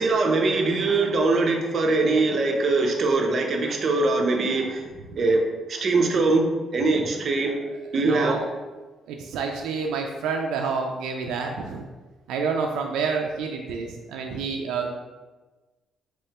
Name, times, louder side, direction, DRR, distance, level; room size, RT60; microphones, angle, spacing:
voice 1, 0.0-4.8 5.2-5.4 5.7-6.4 6.7-7.5 7.9-8.4, right 3 dB, 50° right, 2 dB, 0.6 m, -22 dB
voice 2, 7.7-8.5 9.1-11.9 12.3-14.9, right 5 dB, 85° right, 2 dB, 0.3 m, -29 dB
3.6 x 3.1 x 2.9 m, 1.2 s
cardioid pair, 90°, 0 cm